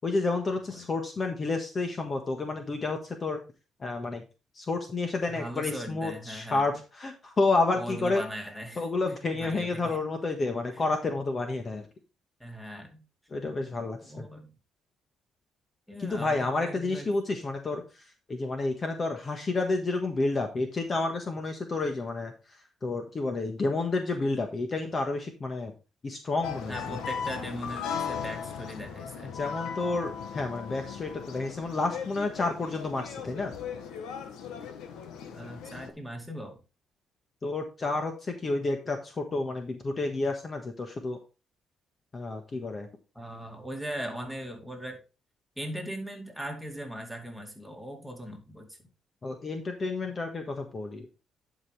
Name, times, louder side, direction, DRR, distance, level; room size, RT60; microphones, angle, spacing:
voice 1, 0.0-3.4 3.8-4.2 4.5-8.2 8.8-11.9 13.3-14.3 16.0-17.8 18.3-22.3 22.8-25.7 26.0-26.8 29.3-33.5 37.4-41.2 42.1-42.9 49.2-51.1, left 3 dB, 35° left, 4 dB, 1.4 m, -30 dB
voice 2, 5.3-6.8 7.7-8.8 9.4-10.0 10.7-10.8 12.4-13.0 14.0-14.5 15.9-17.1 26.7-29.3 35.3-36.6 43.1-45.0 45.6-48.8, equal, ahead, 2 dB, 2.4 m, -39 dB
sound 1, 26.4-35.9, left 7 dB, 90° left, 1.2 m, -37 dB
10.5 x 5.2 x 3.4 m, 0.31 s
cardioid pair, 90°, 0 cm